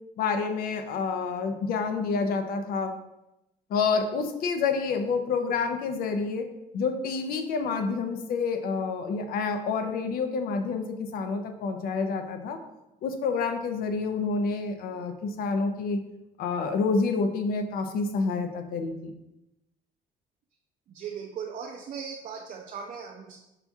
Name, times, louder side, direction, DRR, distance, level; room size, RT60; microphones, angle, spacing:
voice 1, 0.2-2.9 3.7-6.5 6.7-12.6 13.0-16.0 16.4-19.1, left 4 dB, 60° left, 6 dB, 0.5 m, -28 dB
voice 2, 20.9-23.4, right 6 dB, 50° right, 1 dB, 0.4 m, -38 dB
5.7 x 2.3 x 2.6 m, 0.92 s
cardioid pair, 110°, 17 cm